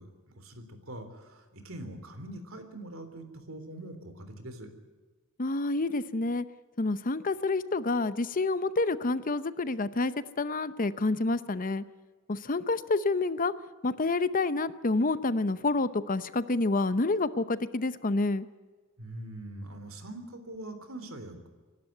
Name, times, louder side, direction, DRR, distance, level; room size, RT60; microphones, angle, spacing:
voice 1, 0.0-4.7 19.0-21.5, right 1 dB, 75° right, 8 dB, 3.5 m, -43 dB
voice 2, 5.4-6.4 6.8-11.8 12.3-13.5 13.8-18.5, left 3 dB, 40° left, 14 dB, 0.8 m, -28 dB
25.0 x 12.0 x 9.5 m, 1.4 s
head